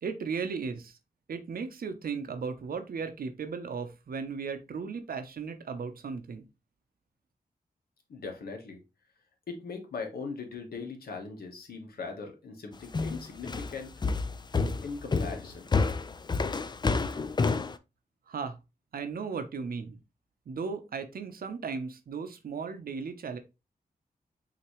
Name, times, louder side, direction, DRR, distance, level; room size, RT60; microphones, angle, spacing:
voice 1, 0.0-1.0 1.3-6.4 18.3-18.6 18.9-20.0 20.5-23.4, right 5 dB, 75° right, 8 dB, 0.8 m, -36 dB
voice 2, 8.1-8.8 9.5-13.9 14.8-15.7, left 4 dB, 90° left, 3 dB, 1.3 m, -40 dB
sound 1, 12.9-17.7, left 4 dB, 30° left, 0.4 m, -28 dB
5.9 x 2.9 x 3.1 m, 0.26 s
cardioid pair, 75°, 15 cm